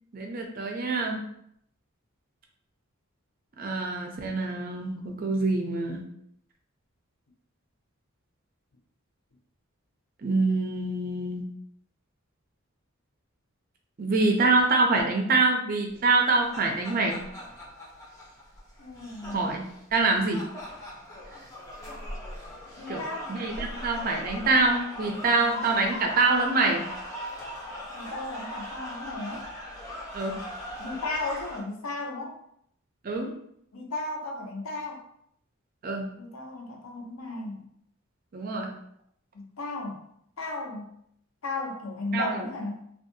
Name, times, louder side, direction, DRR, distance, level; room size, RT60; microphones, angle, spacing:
voice 1, 0.1-1.2 3.6-6.1 10.2-11.5 14.0-17.2 19.3-19.6 19.9-20.5 22.9-23.0 23.3-26.8 30.1-30.4 33.0-33.3 35.8-36.1 38.3-38.7 42.1-42.5, right 3 dB, 40° right, 2 dB, 0.4 m, -25 dB
sound 1, 16.1-31.6, left 1 dB, 15° left, 0.5 m, -40 dB
voice 2, 18.8-19.6 22.8-23.4 25.3-25.7 27.9-29.5 30.8-32.3 33.7-35.0 36.2-37.7 39.3-40.1 40.4-41.0 41.4-42.9, left 2 dB, 80° left, 1 dB, 0.6 m, -35 dB
2.6 x 2.3 x 2.6 m, 0.70 s
head